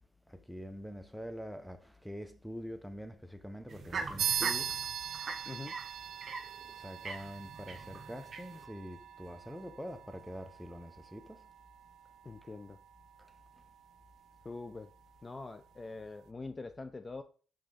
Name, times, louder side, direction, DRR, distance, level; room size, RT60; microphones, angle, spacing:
voice 1, 0.3-4.7 6.0-6.3 6.7-11.5 13.2-13.3, equal, ahead, 0.8 m, -45 dB
sound 1, 3.7-8.7, right 4 dB, 45° right, 0.9 m, -42 dB
sound 2, 4.2-14.1, right 8 dB, 75° right, 0.5 m, -41 dB
voice 2, 12.2-12.8 14.4-14.9 15.2-17.2, left 3 dB, 25° left, 0.4 m, -44 dB
5.7 x 3.5 x 5.0 m
cardioid pair, 90°, 0 cm